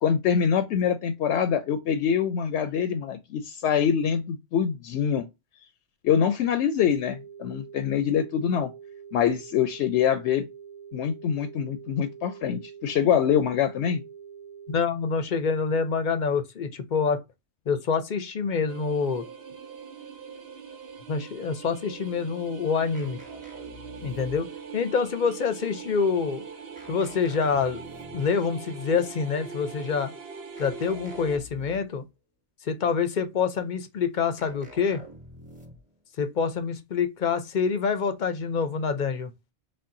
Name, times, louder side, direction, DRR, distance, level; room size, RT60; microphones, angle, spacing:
voice 1, 0.0-5.3 6.0-8.7 9.1-10.5 10.9-14.0, left 8 dB, 80° left, 0.8 m, -24 dB
sound 1, 6.9-14.8, right 8 dB, 40° right, 0.6 m, -45 dB
voice 2, 14.7-17.2 17.7-19.2 21.1-23.2 24.0-26.4 26.9-27.8 28.1-30.1 30.6-32.0 32.6-35.0 36.2-39.3, left 5 dB, 50° left, 0.7 m, -26 dB
sound 2, 18.7-31.4, right 6 dB, 65° right, 1.1 m, -42 dB
sound 3, 22.9-24.7 26.8-28.4 30.6-32.1 34.4-36.0, equal, 10° right, 0.9 m, -47 dB
4.3 x 3.3 x 2.5 m
omnidirectional pair, 1.1 m